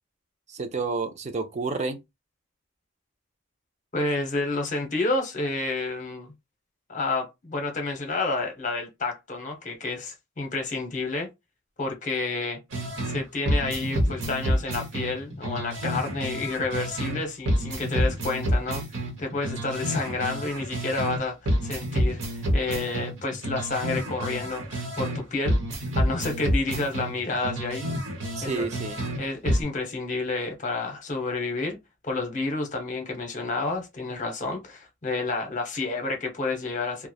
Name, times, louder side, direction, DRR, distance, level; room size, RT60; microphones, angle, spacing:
voice 1, 0.5-2.0 28.4-29.0, right 4 dB, 35° right, 0.4 m, -30 dB
voice 2, 3.9-6.3 6.9-11.3 11.8-12.6 13.1-18.8 19.2-25.6 26.0-27.9 28.4-28.7 29.2-31.8 32.0-37.1, left 3 dB, 40° left, 0.7 m, -30 dB
sound 1, 12.7-13.2 13.5-17.2 17.5-21.2 21.5-25.2 25.5-29.2 29.5-29.6, equal, 70° right, 1.0 m, -28 dB
2.9 x 2.1 x 2.3 m
head